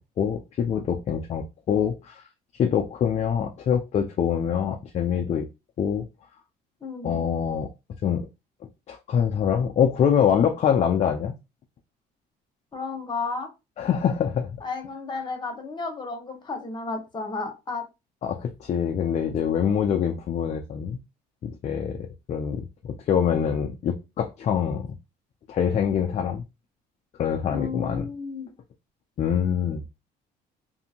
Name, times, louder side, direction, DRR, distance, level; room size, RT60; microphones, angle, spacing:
voice 1, 0.2-2.2 2.6-5.5 5.8-6.1 7.0-7.7 8.0-8.3 8.9-11.3 13.8-14.6 18.2-21.0 21.4-24.9 25.5-26.4 27.2-28.1 29.2-29.8, left 8 dB, 40° left, 0.4 m, -25 dB
voice 2, 6.8-7.1 12.7-13.5 14.6-17.9 27.5-28.5, left 4 dB, 25° left, 1.0 m, -32 dB
2.7 x 2.5 x 2.7 m
cardioid pair, 110°, 17 cm